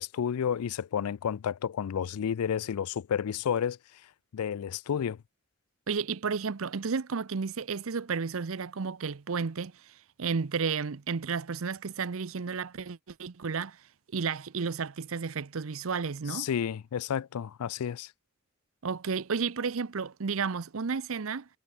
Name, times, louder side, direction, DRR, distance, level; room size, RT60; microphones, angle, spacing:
voice 1, 0.0-3.8 4.3-5.2 16.3-18.1, left 8 dB, 90° left, 0.4 m, -31 dB
voice 2, 5.9-13.8 14.1-16.5 18.8-21.5, right 5 dB, 65° right, 0.7 m, -32 dB
head